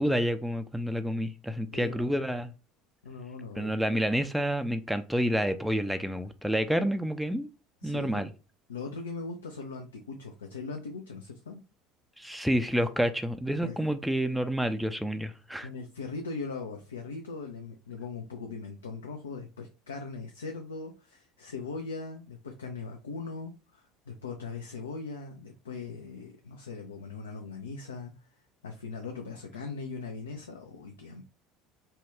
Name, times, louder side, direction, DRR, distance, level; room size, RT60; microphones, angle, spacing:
voice 1, 0.0-2.5 3.6-7.5 7.8-8.3 12.2-15.7, equal, ahead, 0.3 m, -29 dB
voice 2, 1.7-2.1 3.0-4.0 7.8-8.3 8.7-11.6 13.5-13.8 15.6-28.1 28.6-31.2, left 4 dB, 75° left, 0.4 m, -40 dB
2.8 x 2.2 x 3.3 m
figure-of-eight pair, 65°, 0 cm